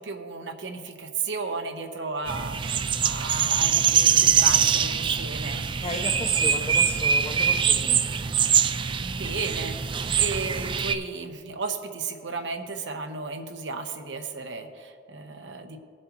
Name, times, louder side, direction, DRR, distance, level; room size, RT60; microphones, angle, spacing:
voice 1, 0.0-5.6 9.0-9.9 10.1-15.8, right 4 dB, 80° right, 5 dB, 1.0 m, -34 dB
sound 1, 2.3-10.9, right 7 dB, 25° right, 0.3 m, -23 dB
voice 2, 5.8-8.0, left 2 dB, 30° left, 7 dB, 0.6 m, -34 dB
19.5 x 7.6 x 3.0 m, 2.2 s
head